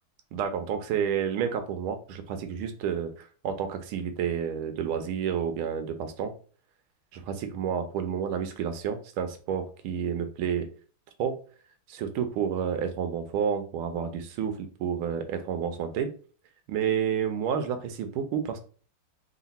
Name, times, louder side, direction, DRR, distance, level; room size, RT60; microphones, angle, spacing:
voice 1, 0.3-6.3 7.1-10.7 11.2-11.4 11.9-16.1 16.7-18.6, right 8 dB, 90° right, 8 dB, 1.6 m, -30 dB
3.8 x 2.5 x 4.1 m, 0.40 s
omnidirectional pair, 2.3 m